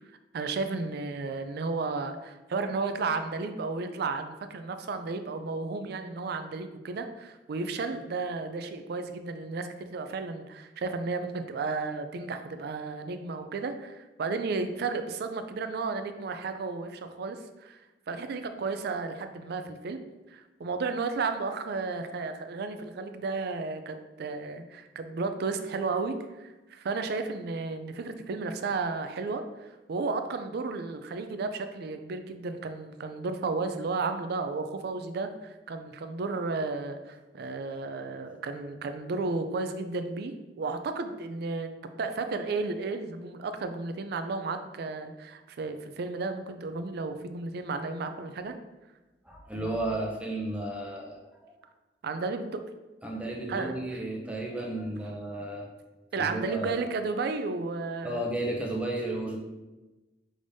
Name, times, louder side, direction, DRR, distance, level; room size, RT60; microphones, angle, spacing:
voice 1, 0.3-17.8 18.1-20.0 20.3-41.7 42.0-48.5 52.0-52.6 53.5-53.7 56.1-58.2, right 4 dB, 65° right, 8 dB, 0.4 m, -33 dB
voice 2, 49.2-51.5 53.0-55.7 56.1-56.7 58.0-59.4, right 1 dB, 5° right, -1 dB, 0.6 m, -33 dB
5.0 x 3.4 x 2.6 m, 1.1 s
head